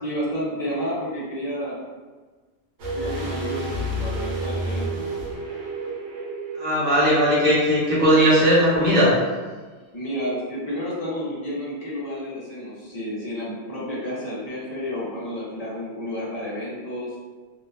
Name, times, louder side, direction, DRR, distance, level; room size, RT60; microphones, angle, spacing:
voice 1, 0.0-1.8 2.9-5.1 9.9-17.1, equal, 40° left, -7 dB, 0.6 m, -30 dB
sound 1, 2.8-7.7 7.9-8.0, right 1 dB, 70° right, 0.9 m, -30 dB
voice 2, 6.6-9.1, equal, 35° right, -10 dB, 0.9 m, -18 dB
2.8 x 2.1 x 2.3 m, 1.4 s
omnidirectional pair, 1.3 m